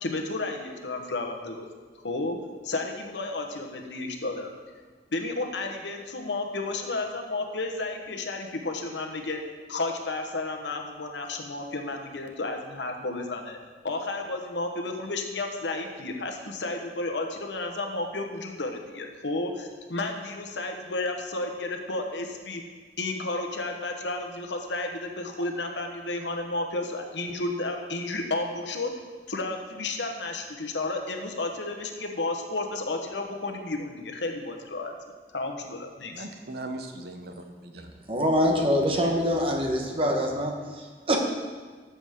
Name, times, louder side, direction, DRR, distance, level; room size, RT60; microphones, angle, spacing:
voice 1, 0.0-1.7 2.0-4.5 5.1-9.4 9.7-13.6 13.8-22.6 23.0-35.0 35.3-36.3, left 2 dB, 85° left, 4 dB, 1.1 m, -32 dB
voice 2, 36.1-37.9 38.4-38.7, right 2 dB, 60° right, 5 dB, 0.9 m, -39 dB
voice 3, 38.1-41.2, equal, 30° right, 2 dB, 1.2 m, -25 dB
13.0 x 7.1 x 3.7 m, 1.5 s
head